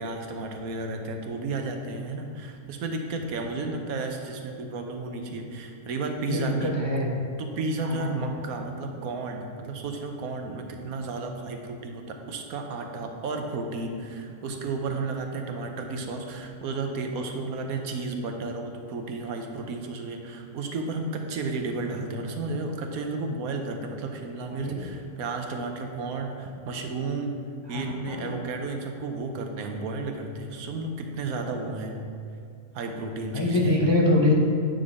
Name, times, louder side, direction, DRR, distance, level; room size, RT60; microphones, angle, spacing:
voice 1, 0.0-6.7 7.4-27.4 27.7-31.9 32.7-33.8, right 3 dB, 80° right, 4 dB, 1.2 m, -33 dB
voice 2, 33.3-34.3, left 2 dB, 30° left, -3 dB, 0.5 m, -22 dB
9.0 x 3.8 x 4.9 m, 2.3 s
omnidirectional pair, 1.5 m